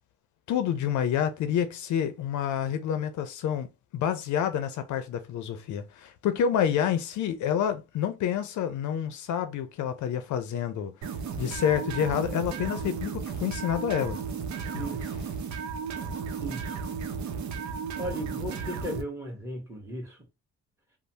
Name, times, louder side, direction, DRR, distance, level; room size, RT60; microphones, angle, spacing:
voice 1, 0.5-3.7 3.9-10.9 11.4-14.2 14.7-14.9, left 9 dB, 75° left, 0.5 m, -28 dB
sound 1, 11.0-19.0, right 5 dB, 70° right, 0.7 m, -34 dB
voice 2, 14.7-15.0 16.4-16.7 18.0-20.2, right 1 dB, 10° right, 1.3 m, -36 dB
3.1 x 2.1 x 2.8 m
cardioid pair, 90°, 30 cm